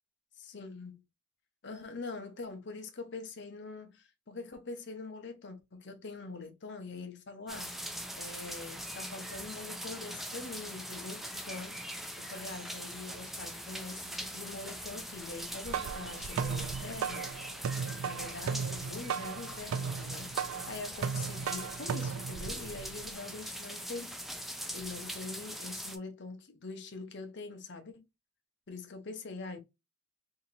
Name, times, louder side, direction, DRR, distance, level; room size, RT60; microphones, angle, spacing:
voice 1, 0.5-1.0 1.6-7.7 8.2-17.3 18.0-20.3 20.7-24.2 24.7-28.0 28.7-29.6, left 3 dB, 55° left, 0.7 m, -44 dB
sound 1, 7.5-26.0, equal, ahead, 0.3 m, -42 dB
sound 2, 15.4-23.1, right 6 dB, 85° right, 0.3 m, -36 dB
2.8 x 2.7 x 4.0 m
head